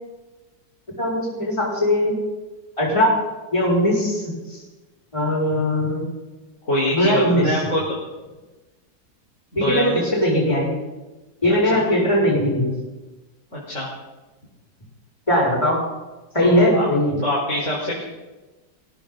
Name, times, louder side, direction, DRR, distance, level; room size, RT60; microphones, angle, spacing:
voice 1, 1.0-2.1 2.8-3.1 3.5-4.2 4.5-4.6 5.1-6.1 6.9-7.5 9.5-10.7 11.4-12.7 15.3-15.8 16.3-17.2, equal, 15° left, -4 dB, 6.3 m, -19 dB
voice 2, 6.6-7.8 9.5-10.1 11.6-11.8 13.5-13.9 16.4-16.9 17.2-18.0, equal, 40° left, -6 dB, 4.7 m, -24 dB
21.0 x 16.5 x 3.9 m, 1.1 s
omnidirectional pair, 2.1 m